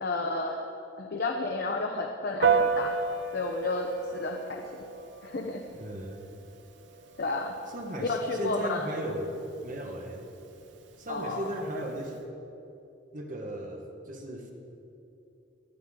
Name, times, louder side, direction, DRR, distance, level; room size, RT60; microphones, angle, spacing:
voice 1, 0.0-0.6 1.0-3.0 3.3-3.9 4.2-4.7 5.2-5.6 7.2-7.5 8.0-8.9 11.1-11.4, left 3 dB, 55° left, 2 dB, 0.9 m, -31 dB
Piano, 2.4-12.2, right 5 dB, 70° right, 0.9 m, -34 dB
voice 2, 5.7-6.2 7.7-9.4 9.6-10.3 11.0-12.2 13.1-14.5, right 1 dB, 45° right, 1 dB, 1.5 m, -36 dB
18.5 x 13.0 x 3.8 m, 2.8 s
head